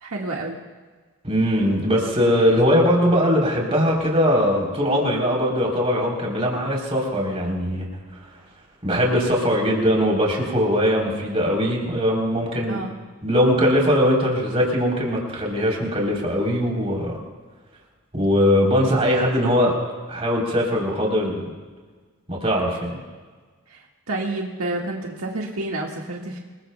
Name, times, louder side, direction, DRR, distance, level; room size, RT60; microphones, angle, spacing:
voice 1, 0.0-0.6 12.7-12.9 23.7-26.4, right 2 dB, 85° right, -1 dB, 1.7 m, -29 dB
voice 2, 1.2-8.2 8.8-12.8 13.2-17.2 18.1-19.8 20.1-21.5 22.3-23.0, equal, 30° right, -2 dB, 3.6 m, -21 dB
26.5 x 21.5 x 2.3 m, 1.4 s
head